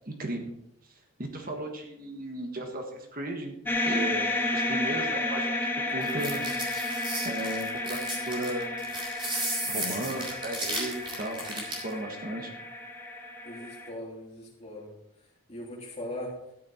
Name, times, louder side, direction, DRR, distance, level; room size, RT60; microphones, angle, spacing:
voice 1, 0.1-0.4 0.9-3.6 3.8-8.7 9.6-12.5, right 1 dB, 40° right, 3 dB, 1.5 m, -36 dB
sound 1, 3.7-13.9, left 2 dB, 10° left, 1.5 m, -32 dB
sound 2, 6.0-11.9, right 1 dB, 20° right, 3.5 m, -34 dB
voice 2, 13.4-14.9 15.5-16.3, left 1 dB, 30° left, -3 dB, 3.4 m, -39 dB
12.5 x 9.9 x 4.3 m, 0.79 s
head